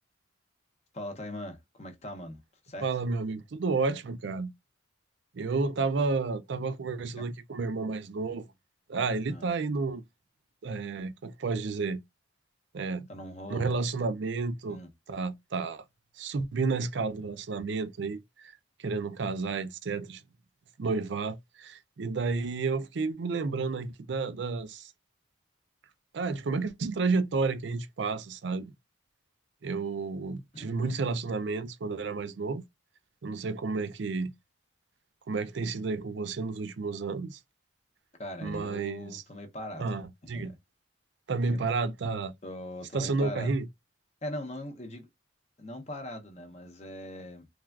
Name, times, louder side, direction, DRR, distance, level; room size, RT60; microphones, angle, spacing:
voice 1, 0.9-2.9 7.2-7.3 9.3-9.5 13.1-13.7 14.7-14.9 30.5-30.9 38.2-39.9 40.3-40.6 41.5-41.6 42.4-43.5 44.2-45.1 45.6-47.5, left 1 dB, 35° left, 0.7 m, -40 dB
voice 2, 2.8-4.5 5.3-8.5 8.9-10.0 10.6-12.0 12.7-13.1 13.5-14.8 15.1-15.8 16.2-18.5 18.8-20.2 20.8-24.9 26.1-28.7 29.6-32.6 33.2-34.3 35.3-37.4 38.4-39.2 39.8-40.5 41.3-42.3 42.9-43.7, right 4 dB, 60° right, 0.4 m, -31 dB
3.3 x 2.4 x 2.3 m
head